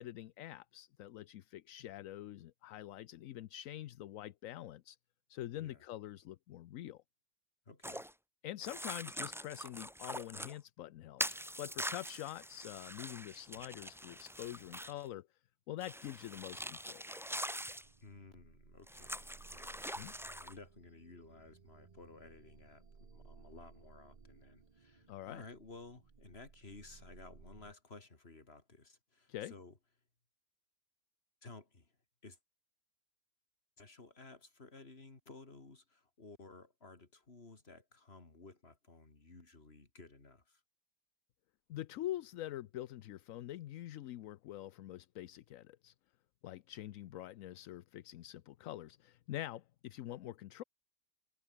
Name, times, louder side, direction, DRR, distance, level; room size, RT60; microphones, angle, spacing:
voice 1, 0.0-5.0 5.3-7.0 8.4-15.3 15.7-17.0 19.9-20.1 25.1-25.4 29.3-29.5 41.7-45.9 46.4-50.6, left 13 dB, 70° left, 1.0 m, -45 dB
voice 2, 7.7-8.0 18.0-29.8 31.4-31.9 32.2-32.4 33.8-40.6, left 3 dB, 40° left, 3.2 m, -55 dB
sound 1, 7.8-8.1 8.6-10.5 11.2-15.1 15.8-17.9 18.9-20.5, equal, ahead, 0.9 m, -43 dB
sound 2, 17.8-27.7, right 5 dB, 30° right, 1.0 m, -60 dB
omnidirectional pair, 1.6 m